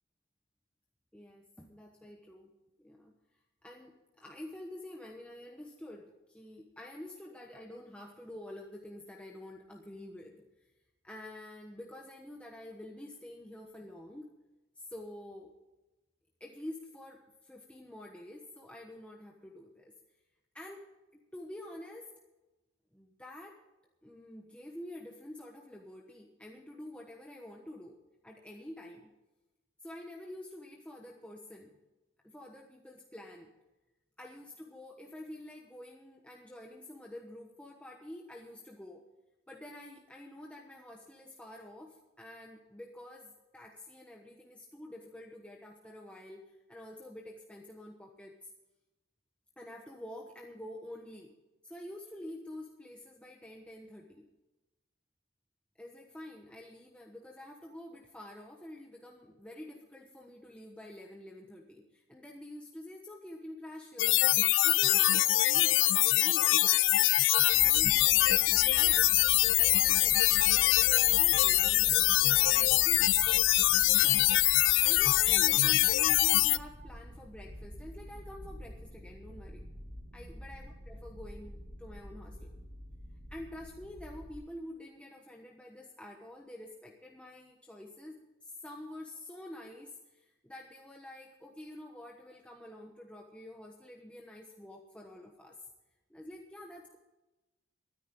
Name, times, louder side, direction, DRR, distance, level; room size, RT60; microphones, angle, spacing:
voice 1, 1.1-2.5 2.8-3.1 3.6-10.7 11.0-14.3 14.8-15.5 16.4-19.9 20.5-20.9 21.1-22.1 22.9-23.6 24.0-29.1 29.8-31.7 32.2-33.5 34.2-39.0 39.5-48.5 49.6-51.3 51.6-54.2 55.8-64.2 64.6-66.8 67.4-69.2 69.5-73.1 74.0-74.4 74.8-79.6 80.1-82.5 83.3-95.6 96.1-97.0, left 1 dB, 5° left, 0 dB, 1.1 m, -48 dB
sound 1, 64.0-76.6, left 16 dB, 60° left, 0.4 m, -24 dB
sound 2, 67.5-84.4, equal, 70° right, 5.6 m, -47 dB
23.0 x 10.0 x 3.8 m, 1.1 s
head